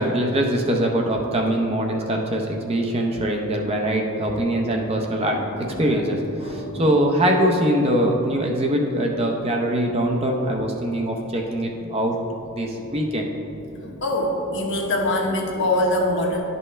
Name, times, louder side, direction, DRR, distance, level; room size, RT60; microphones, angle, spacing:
voice 1, 0.0-5.4 5.8-12.2 12.6-13.3, right 1 dB, 30° right, 1 dB, 0.6 m, -22 dB
voice 2, 5.6-6.0 6.4-7.0 12.7-12.8 13.8-16.4, left 1 dB, 60° left, 0 dB, 1.1 m, -24 dB
11.0 x 5.4 x 3.3 m, 3.0 s
head